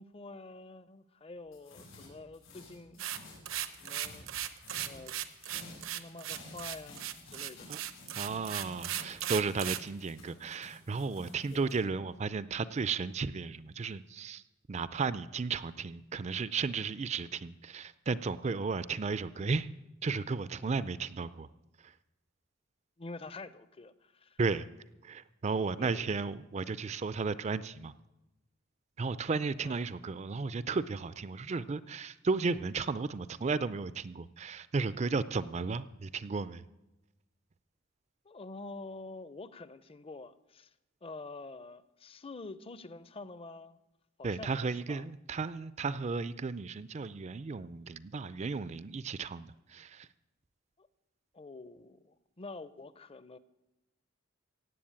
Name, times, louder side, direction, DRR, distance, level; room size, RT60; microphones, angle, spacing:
voice 1, 0.0-3.1 3.8-4.3 4.8-5.2 5.4-7.7 11.5-11.7 23.0-24.4 25.8-26.1 29.6-29.9 38.2-40.7 41.0-43.8 44.2-45.1 50.8-50.9 51.3-53.4, left 3 dB, 30° left, 15 dB, 0.6 m, -47 dB
sound 1, 1.5-5.0 5.3-11.8, left 2 dB, 90° left, 6.0 m, -52 dB
sound 2, 3.0-9.9, right 12 dB, 80° right, 0.9 m, -37 dB
voice 2, 8.2-14.4 14.7-19.7 20.0-21.5 21.8-21.9 24.4-24.7 25.0-27.9 29.0-36.6 44.2-50.1, right 4 dB, 35° right, 16 dB, 0.4 m, -34 dB
16.5 x 7.7 x 8.7 m, 0.98 s
head